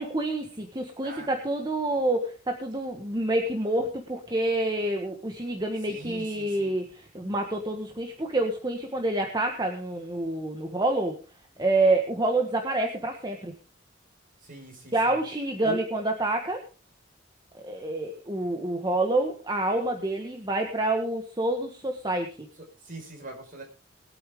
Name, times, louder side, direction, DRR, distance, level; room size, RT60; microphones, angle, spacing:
voice 1, 0.0-11.1 11.6-13.5 14.9-16.6 17.6-22.3, right 2 dB, 20° right, 2 dB, 1.5 m, -27 dB
voice 2, 5.9-6.8 14.4-15.2 15.6-15.8 22.6-23.6, right 1 dB, 45° right, 2 dB, 5.3 m, -41 dB
20.5 x 8.9 x 3.7 m, 0.37 s
head